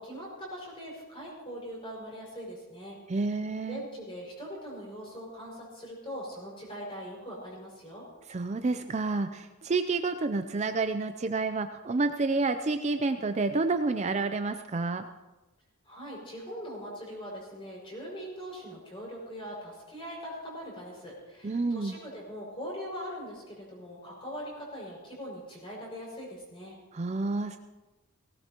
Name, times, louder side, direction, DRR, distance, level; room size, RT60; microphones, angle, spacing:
voice 1, 0.0-3.0 3.3-3.4 3.7-8.0 15.8-26.8, equal, 25° left, -3 dB, 5.7 m, -41 dB
voice 2, 3.1-3.8 8.3-15.0 21.4-22.0 26.9-27.6, right 3 dB, 30° right, 8 dB, 0.4 m, -29 dB
18.0 x 17.5 x 3.0 m, 1.1 s
head